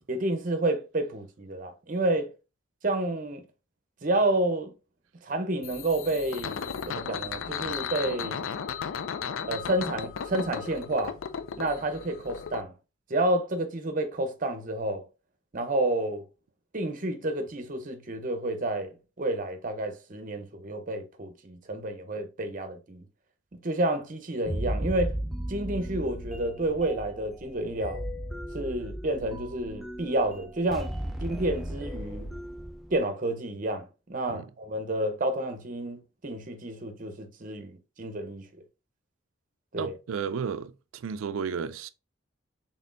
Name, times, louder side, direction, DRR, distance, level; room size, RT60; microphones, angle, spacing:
voice 1, 0.1-2.3 2.8-3.4 4.0-4.7 5.2-8.4 9.4-11.2 11.6-12.7 13.1-15.0 15.5-16.2 16.7-23.0 23.6-25.2 25.5-28.0 28.5-30.9 31.2-32.3 32.9-38.6 39.7-39.9, right 1 dB, 40° right, 0.7 m, -30 dB
sound 1, 5.6-12.6, left 7 dB, 70° left, 0.4 m, -35 dB
sound 2, 24.5-33.0, equal, ahead, 0.4 m, -36 dB
voice 2, 39.8-41.9, right 6 dB, 80° right, 0.4 m, -33 dB
4.2 x 3.7 x 2.5 m
head